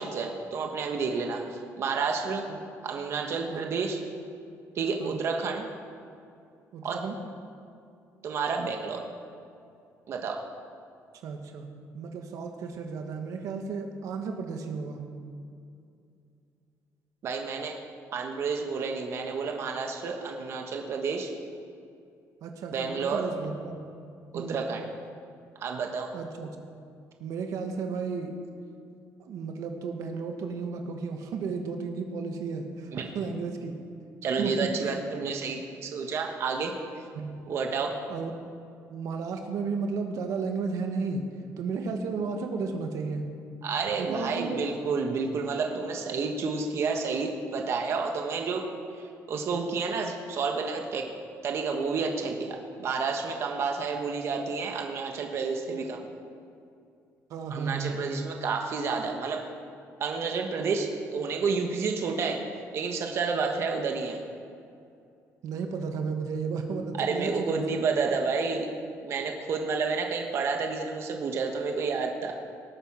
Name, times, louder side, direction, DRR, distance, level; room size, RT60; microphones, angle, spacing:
voice 1, 0.0-2.4 2.8-4.0 4.7-5.6 6.8-7.0 8.2-9.1 10.1-10.4 17.2-17.8 18.1-21.3 22.7-23.3 24.3-24.9 25.6-26.1 32.9-33.0 34.2-36.7 37.5-38.0 43.6-48.6 49.3-51.1 51.4-56.1 57.5-59.4 60.0-62.4 62.7-64.2 67.0-68.7 69.0-72.3, right 4 dB, 50° right, 3 dB, 1.3 m, -30 dB
voice 2, 6.7-7.2 11.2-11.7 11.9-15.0 22.4-23.8 24.3-24.6 26.1-26.5 27.2-28.4 29.2-33.7 34.2-34.9 37.1-37.4 38.1-38.3 38.9-41.2 41.6-43.2 44.0-44.6 55.7-55.8 57.3-58.0 65.4-67.8, right 5 dB, 70° right, 4 dB, 1.4 m, -33 dB
19.0 x 9.2 x 6.1 m, 2.5 s
cardioid pair, 155°, 6 cm